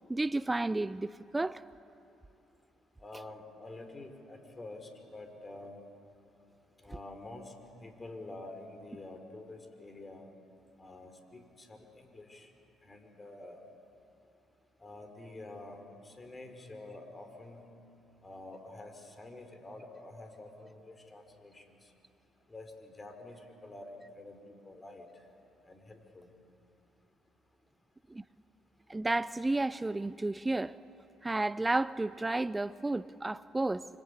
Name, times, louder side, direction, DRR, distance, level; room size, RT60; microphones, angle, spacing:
voice 1, 0.1-1.6 28.1-28.2 28.9-30.8 31.2-33.9, right 2 dB, 15° right, 0.5 m, -32 dB
voice 2, 3.0-5.8 6.8-7.5 7.8-10.3 10.8-12.5 12.8-13.6 14.8-17.7 18.2-21.9 22.5-25.2 25.6-26.3, left 2 dB, 25° left, 4.8 m, -48 dB
26.0 x 25.5 x 8.5 m
hypercardioid pair, 50°, 0 cm